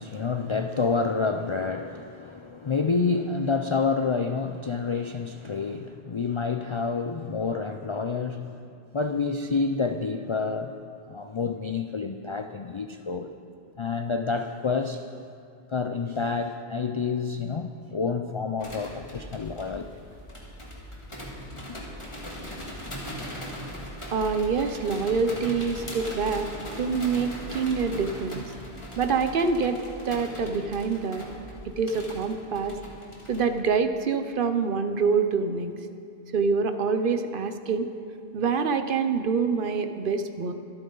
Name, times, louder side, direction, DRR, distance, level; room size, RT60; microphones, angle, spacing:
voice 1, 0.0-10.7 11.1-13.3 13.8-15.0 15.7-20.0 21.6-21.8, left 4 dB, 50° left, 6 dB, 0.3 m, -28 dB
sound 1, 18.6-33.6, equal, 30° left, 2.1 m, -39 dB
voice 2, 24.1-26.5 26.8-28.4 29.0-31.2 31.6-32.7 33.3-35.7 36.3-37.9 38.3-40.5, right 5 dB, 60° right, 8 dB, 0.9 m, -26 dB
24.0 x 9.0 x 3.9 m, 2.5 s
omnidirectional pair, 1.0 m